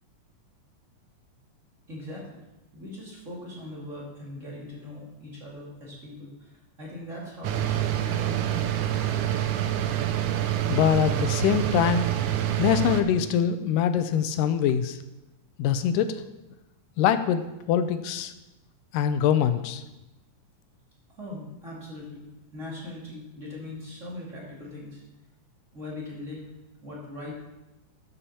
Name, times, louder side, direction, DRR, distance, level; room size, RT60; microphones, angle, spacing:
voice 1, 1.9-2.3 2.7-8.6 21.1-25.0 25.7-26.5 26.8-27.3, left 1 dB, 25° right, -5 dB, 2.4 m, -40 dB
sound 1, 7.4-13.0, right 11 dB, 80° right, 2.1 m, -26 dB
voice 2, 10.7-12.0 12.6-15.0 15.6-16.1 17.0-17.4 17.7-18.3 18.9-19.8, left 9 dB, 85° left, 11 dB, 2.2 m, -23 dB
13.0 x 6.8 x 4.2 m, 0.99 s
omnidirectional pair, 3.7 m